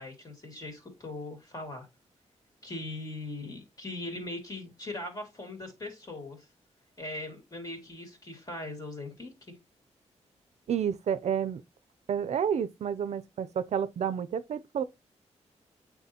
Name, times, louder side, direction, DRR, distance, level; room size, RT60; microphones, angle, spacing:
voice 1, 0.0-1.9 2.6-6.4 7.0-9.3, left 2 dB, 30° left, 2.7 m, -40 dB
voice 2, 10.7-11.6 12.1-14.8, right 8 dB, 70° right, 0.5 m, -30 dB
9.3 x 3.6 x 2.8 m
wide cardioid pair, 120°, 12 cm